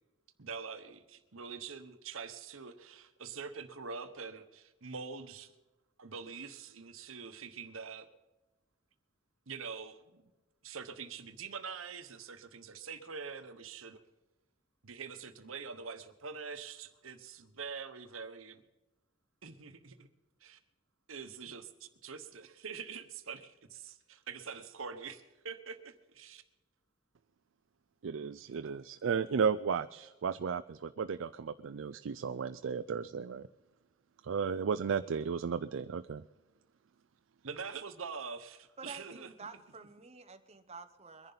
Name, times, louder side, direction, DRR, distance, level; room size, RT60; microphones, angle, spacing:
voice 1, 0.4-5.5 6.0-8.1 9.5-10.3 10.6-14.0 14.8-18.6 19.4-20.1 20.4-20.6 21.1-26.4 37.4-39.5, right 5 dB, 85° right, 9 dB, 1.1 m, -45 dB
voice 2, 28.0-33.5 34.2-36.2, right 6 dB, 70° right, 11 dB, 0.4 m, -34 dB
voice 3, 38.8-41.3, right 4 dB, 30° right, 7 dB, 0.9 m, -49 dB
22.5 x 11.0 x 4.0 m, 1.1 s
head